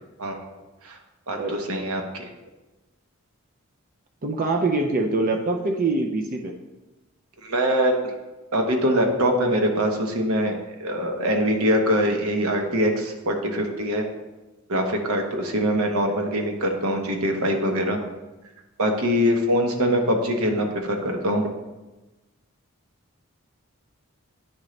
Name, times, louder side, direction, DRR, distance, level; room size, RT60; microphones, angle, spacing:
voice 1, 1.3-2.3 7.4-7.9 8.5-14.0 14.7-18.0 18.8-21.5, equal, 75° right, 3 dB, 0.9 m, -23 dB
voice 2, 4.2-6.5, right 3 dB, 40° right, 3 dB, 0.4 m, -24 dB
9.7 x 3.8 x 3.2 m, 1.1 s
head